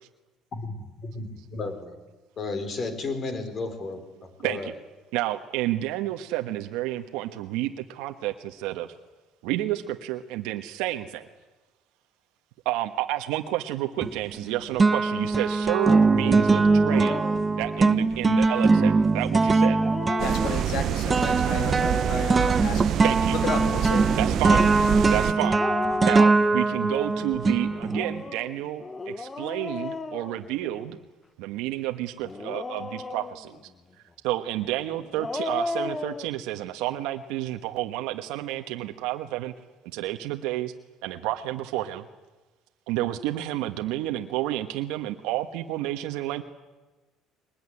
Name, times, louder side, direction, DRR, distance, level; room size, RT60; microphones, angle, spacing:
voice 1, 1.0-2.0 2.4-4.7, left 3 dB, 40° left, 8 dB, 4.9 m, -33 dB
voice 2, 4.4-4.7 5.1-8.9 9.4-11.3 12.6-17.2 17.6-19.8 23.0-23.4 24.2-24.6 25.1-25.6 26.0-31.0 31.4-33.6 34.2-39.5 39.9-40.7 41.0-42.0 42.9-46.4, right 14 dB, 85° right, 5 dB, 1.3 m, -30 dB
sound 1, 14.0-14.5 14.8-28.2, right 3 dB, 20° right, 1.1 m, -22 dB
Dog, 16.9-17.5 19.6-21.0 23.1-23.9 25.4-26.9 27.8-31.0 32.2-33.6 35.0-36.3, left 3 dB, 20° left, 1.1 m, -35 dB
voice 3, 20.2-23.0 23.4-24.1 24.5-24.6, left 5 dB, 65° left, 8 dB, 2.6 m, -33 dB
sound 2, 20.2-25.3, right 11 dB, 55° right, 0.7 m, -27 dB
23.0 x 20.5 x 9.9 m, 1.2 s
cardioid pair, 110°, 0 cm